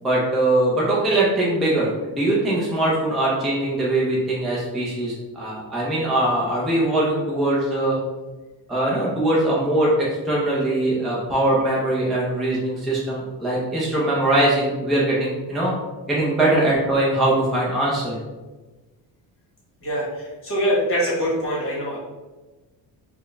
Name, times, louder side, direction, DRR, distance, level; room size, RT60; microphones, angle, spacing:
voice 1, 0.0-8.0 8.7-15.7 16.1-18.2, right 1 dB, ahead, -6 dB, 0.4 m, -21 dB
voice 2, 19.8-22.0, equal, 30° left, -5 dB, 1.4 m, -24 dB
4.2 x 2.2 x 3.2 m, 1.2 s
cardioid pair, 170°, 43 cm